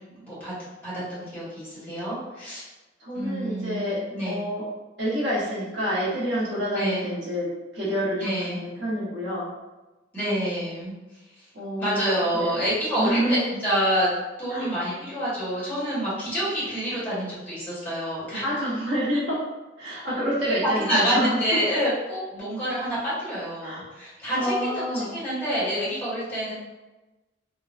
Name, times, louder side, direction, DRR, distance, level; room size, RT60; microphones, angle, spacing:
voice 1, 0.1-0.5 0.8-2.6 3.1-4.4 6.7-7.1 8.2-8.6 10.1-10.9 11.4-11.5 11.8-14.1 14.4-18.5 20.8-26.5, equal, 10° left, -11 dB, 1.3 m, -27 dB
voice 2, 3.0-4.7 5.0-9.5 11.5-12.6 13.0-13.4 14.5-14.7 18.4-19.4 19.8-21.6 23.6-23.8 24.3-25.1, equal, 75° right, -8 dB, 1.3 m, -28 dB
3.8 x 2.2 x 2.5 m, 1.1 s
head